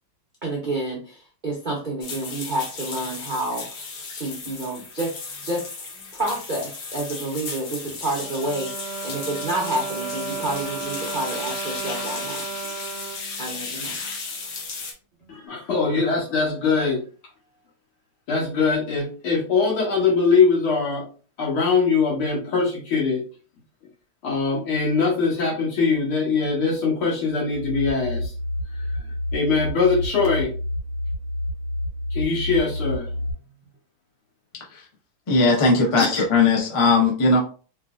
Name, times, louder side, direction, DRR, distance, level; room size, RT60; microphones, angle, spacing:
voice 1, 0.4-3.8 4.1-5.1 5.4-5.6 6.1-12.4 13.4-14.0, right 2 dB, 75° right, -3 dB, 0.4 m, -29 dB
sound 1, 2.0-14.9, left 4 dB, 60° left, 1.2 m, -35 dB
Bowed string instrument, 7.9-14.1 14.8-14.9 15.2-15.3, right 5 dB, 15° left, 1.5 m, -34 dB
voice 2, 15.3-17.0 18.3-21.0 21.4-23.2 24.2-28.3 29.3-30.5 32.1-33.1 36.0-36.2, left 4 dB, 75° left, -4 dB, 2.6 m, -22 dB
sound 2, 27.5-33.3, left 1 dB, 10° right, 0.9 m, -29 dB
voice 3, 35.3-37.4, left 3 dB, 40° left, -2 dB, 0.4 m, -18 dB
4.6 x 3.1 x 2.4 m, 0.38 s
omnidirectional pair, 2.4 m